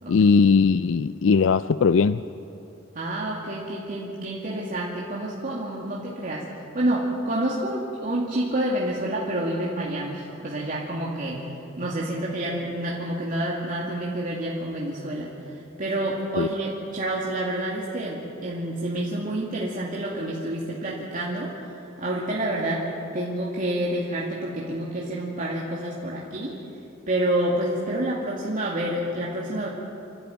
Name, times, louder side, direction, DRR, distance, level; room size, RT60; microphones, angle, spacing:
voice 1, 0.1-2.2 16.4-16.5, left 5 dB, 75° left, 14 dB, 0.4 m, -19 dB
voice 2, 2.9-6.5 6.7-11.4 11.8-22.8 23.1-26.6 27.1-29.7, right 1 dB, 45° right, -5 dB, 2.3 m, -28 dB
28.0 x 12.5 x 9.2 m, 2.8 s
head